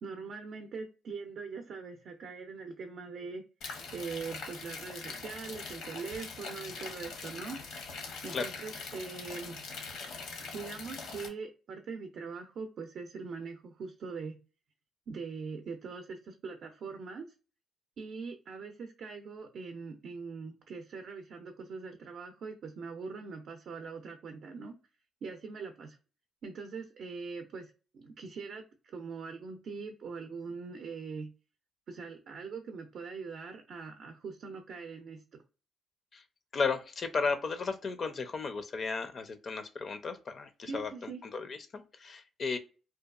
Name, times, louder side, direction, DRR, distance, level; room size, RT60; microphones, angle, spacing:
voice 1, 0.0-3.4 3.9-7.6 7.9-9.6 10.5-14.4 15.1-17.3 18.0-24.7 25.2-26.0 26.4-31.3 31.9-35.4 40.6-41.2, right 4 dB, 65° right, 5 dB, 0.4 m, -42 dB
sound 1, 3.6-11.3, left 4 dB, 85° left, 0.8 m, -42 dB
voice 2, 36.5-42.6, left 4 dB, 50° left, 9 dB, 0.4 m, -34 dB
2.7 x 2.3 x 2.3 m, 0.34 s
cardioid pair, 90°, 0 cm